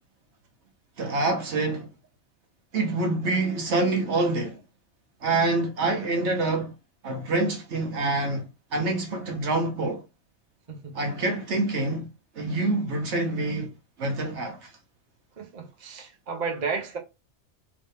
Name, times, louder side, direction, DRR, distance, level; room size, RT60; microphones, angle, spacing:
voice 1, 1.0-1.9 2.7-4.6 5.2-6.7 7.0-10.0 10.9-12.1 12.3-14.7, right 2 dB, 70° right, 1.2 m, -26 dB
voice 2, 15.4-17.0, right 5 dB, 40° right, 0.8 m, -33 dB
3.2 x 2.7 x 3.2 m
omnidirectional pair, 1.2 m